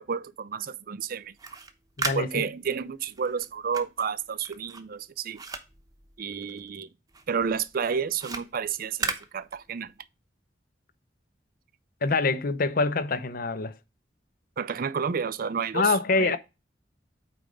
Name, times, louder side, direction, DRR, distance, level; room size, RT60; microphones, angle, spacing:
voice 1, 0.0-1.3 2.1-5.4 6.2-6.9 7.3-9.9 14.6-16.4, right 6 dB, 55° right, 0.5 m, -31 dB
sound 1, 1.2-6.8 7.1-10.0, right 4 dB, 20° right, 0.9 m, -37 dB
voice 2, 2.0-2.5 12.0-13.7 15.7-16.4, left 3 dB, 50° left, 0.7 m, -25 dB
8.7 x 3.3 x 5.1 m
head